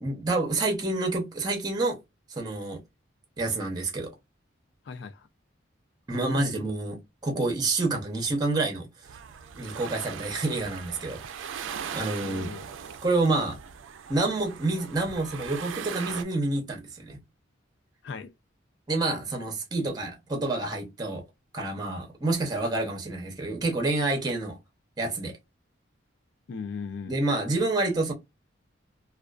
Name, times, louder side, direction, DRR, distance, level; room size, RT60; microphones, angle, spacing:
voice 1, 0.0-2.0 2.3-2.8 3.4-4.1 6.1-8.9 9.6-11.5 11.9-12.5 13.0-13.6 14.1-17.2 18.9-21.2 21.5-24.6 25.0-25.4 27.1-28.1, right 2 dB, 20° right, 0.6 m, -28 dB
voice 2, 4.9-5.3 6.2-6.7 12.2-12.7 18.0-18.3 26.5-27.1, left 5 dB, 60° left, 0.3 m, -38 dB
sound 1, 9.0-16.2, right 7 dB, 80° right, 0.3 m, -39 dB
2.4 x 2.2 x 2.3 m
head